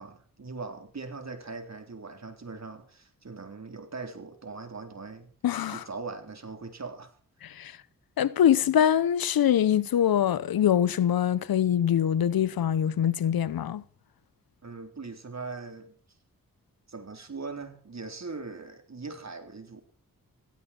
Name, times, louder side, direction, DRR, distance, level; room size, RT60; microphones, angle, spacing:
voice 1, 0.0-5.3 5.7-7.2 14.6-15.9 16.9-19.8, right 4 dB, 50° right, 3.7 m, -40 dB
voice 2, 5.4-5.8 7.4-7.8 8.2-13.8, left 10 dB, 85° left, 0.9 m, -24 dB
17.0 x 16.0 x 4.5 m
cardioid pair, 55°, 35 cm